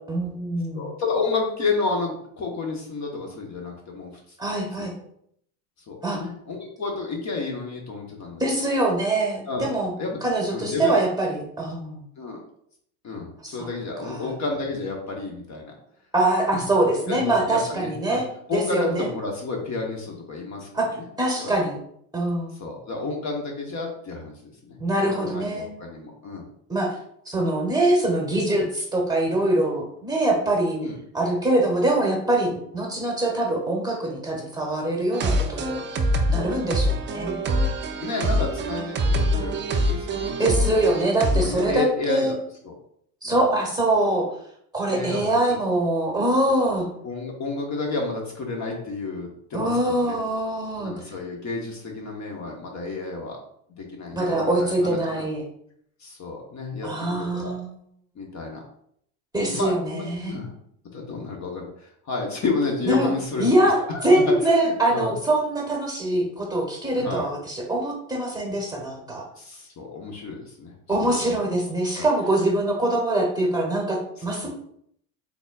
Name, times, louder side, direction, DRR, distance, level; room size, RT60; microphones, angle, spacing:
voice 1, 0.1-0.9 4.4-4.9 6.0-6.2 8.4-9.9 10.2-12.0 13.4-13.6 14.0-14.3 16.1-18.2 18.5-19.1 20.7-20.9 21.2-21.8 22.1-22.5 24.8-25.7 26.7-26.9 27.3-30.8 31.1-36.0 36.3-37.4 40.4-42.3 43.2-44.3 44.7-46.9 49.5-50.9 54.1-55.4 56.8-57.7 59.3-60.4 62.9-63.1 63.4-69.2 70.9-74.5, right 1 dB, 10° right, 0 dB, 1.0 m, -23 dB
voice 2, 0.7-4.4 4.8-4.9 5.9-8.4 9.5-9.7 10.0-10.2 10.5-11.0 12.2-12.4 13.0-15.7 16.4-16.5 17.1-18.2 18.5-20.7 20.9-21.0 21.4-21.6 22.6-26.4 27.4-27.5 30.8-31.0 37.9-40.3 40.7-41.0 41.3-42.4 42.6-42.7 43.2-43.4 44.9-45.4 47.0-50.2 50.8-53.4 53.8-55.3 56.0-57.5 58.1-58.6 59.4-60.5 60.9-65.1 67.0-67.3 69.4-71.4 72.0-72.1 72.4-72.5 74.4-74.5, left 3 dB, 35° left, 1 dB, 1.0 m, -31 dB
sound 1, 35.1-41.8, equal, 25° right, 0.5 m, -25 dB
3.9 x 3.6 x 2.3 m, 0.69 s
hypercardioid pair, 85°, 48 cm